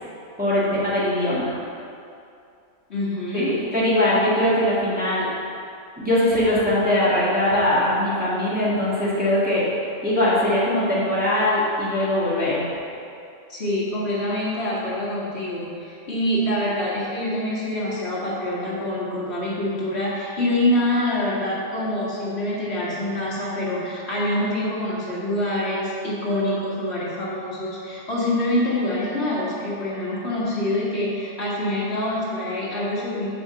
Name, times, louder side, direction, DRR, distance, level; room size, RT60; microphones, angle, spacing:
voice 1, 0.4-1.5 3.3-5.3 6.0-9.6 10.0-12.7, left 1 dB, 5° right, -9 dB, 1.7 m, -21 dB
voice 2, 2.9-3.5 13.5-33.3, left 1 dB, 55° left, -7 dB, 1.9 m, -25 dB
6.8 x 5.2 x 6.8 m, 2.5 s
omnidirectional pair, 1.3 m